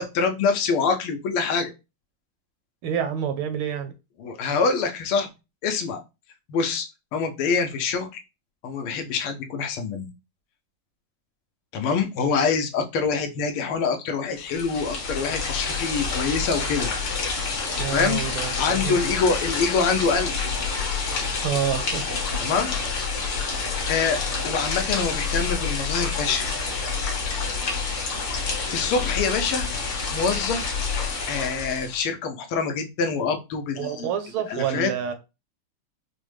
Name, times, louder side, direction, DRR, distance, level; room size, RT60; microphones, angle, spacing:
voice 1, 0.0-1.7 4.2-5.3 5.6-6.0 6.5-6.9 7.1-8.2 8.6-10.1 11.7-16.9 17.9-18.2 18.5-20.4 22.4-22.8 23.9-24.2 24.4-26.5 28.2-28.4 28.7-29.7 30.1-30.7 31.3-34.1 34.5-34.9, left 5 dB, 90° left, 1.5 m, -25 dB
voice 2, 2.8-3.9 17.8-19.0 21.4-22.4 33.8-35.1, right 9 dB, 75° right, 1.5 m, -28 dB
sound 1, 14.4-32.0, left 4 dB, 65° left, 1.7 m, -28 dB
5.1 x 2.1 x 3.2 m
omnidirectional pair, 2.4 m